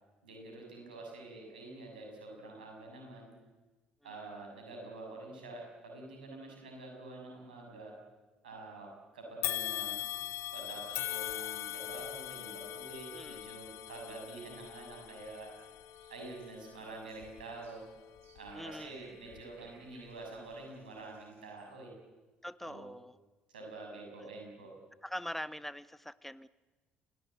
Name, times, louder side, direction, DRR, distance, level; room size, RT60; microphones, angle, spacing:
voice 1, 0.2-3.3 4.0-8.0 8.4-10.0 10.5-15.8 16.1-17.8 18.3-21.9 22.6-22.9 23.5-24.8, right 2 dB, 75° right, 1 dB, 6.8 m, -47 dB
sound 1, 9.4-18.7 19.2-19.4 20.4-20.5, left 14 dB, 55° left, 1.6 m, -41 dB
voice 2, 13.1-13.4 18.5-19.1 22.4-23.2 24.2-24.3 25.0-26.5, equal, 5° left, 18 dB, 0.8 m, -43 dB
sound 2, 15.1-21.7, right 4 dB, 50° right, 7.3 m, -66 dB
29.0 x 17.5 x 8.9 m, 1.2 s
figure-of-eight pair, 50°, 5 cm